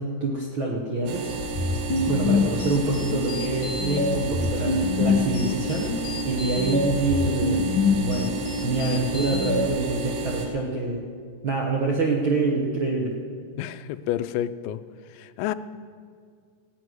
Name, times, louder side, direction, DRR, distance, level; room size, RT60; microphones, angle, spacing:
voice 1, 0.0-1.3 2.1-5.9 6.2-7.6 8.0-8.3 8.6-11.0 11.4-13.1, right 3 dB, 65° right, -1 dB, 1.3 m, -26 dB
sound 1, 1.1-10.5, right 3 dB, 90° right, 3.1 m, -32 dB
sound 2, 1.4-9.7, left 3 dB, 65° left, 1.2 m, -26 dB
voice 2, 13.6-14.8 15.2-15.5, left 12 dB, 90° left, 12 dB, 2.3 m, -29 dB
15.5 x 6.1 x 9.4 m, 2.1 s
omnidirectional pair, 3.9 m